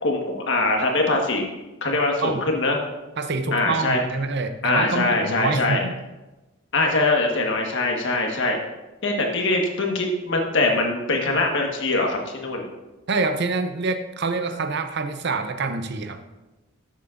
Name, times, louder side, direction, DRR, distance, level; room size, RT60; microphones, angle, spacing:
voice 1, 0.0-1.4 1.8-2.8 3.5-4.0 4.6-5.8 6.7-8.6 9.0-12.7, left 2 dB, 65° left, 1 dB, 1.5 m, -22 dB
voice 2, 3.2-6.0 13.1-16.2, right 3 dB, 60° right, 8 dB, 0.7 m, -26 dB
12.5 x 7.3 x 2.6 m, 1.1 s
head